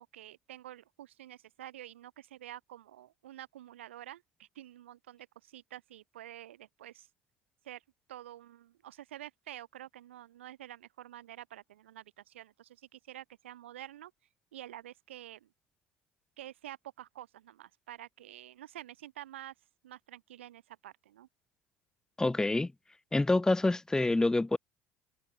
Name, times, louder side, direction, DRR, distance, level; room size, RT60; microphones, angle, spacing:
voice 1, 0.0-7.1 7.6-7.8 8.1-14.1 14.5-15.5 16.4-19.5 19.8-21.3, right 13 dB, 80° right, 4.7 m, -49 dB
voice 2, 22.2-22.7 23.1-24.6, left 2 dB, 10° left, 0.5 m, -27 dB
hypercardioid pair, 65°, 6 cm